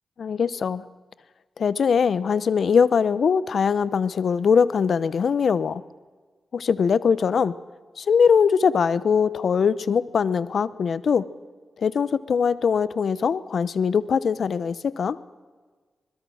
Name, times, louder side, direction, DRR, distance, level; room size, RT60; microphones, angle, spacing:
voice 1, 0.2-0.8 1.6-5.8 6.5-7.6 8.0-11.3 11.8-15.2, left 6 dB, 70° left, 17 dB, 0.9 m, -21 dB
26.0 x 21.0 x 6.4 m, 1.4 s
cardioid pair, 60°, 0 cm